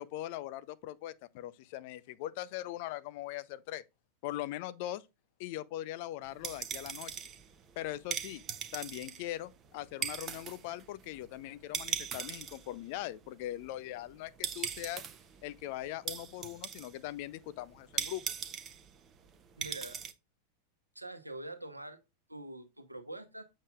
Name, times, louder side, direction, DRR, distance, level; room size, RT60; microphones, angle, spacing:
voice 1, 0.0-3.8 4.2-5.0 5.4-7.1 7.8-8.4 8.7-15.0 15.4-18.2, left 14 dB, 45° left, 0.5 m, -41 dB
sound 1, 6.2-20.1, right 8 dB, 30° right, 0.8 m, -40 dB
voice 2, 19.6-20.0 20.9-22.0 22.3-23.4, right 1 dB, 85° right, 1.0 m, -44 dB
7.4 x 6.8 x 2.4 m
figure-of-eight pair, 90°, 0 cm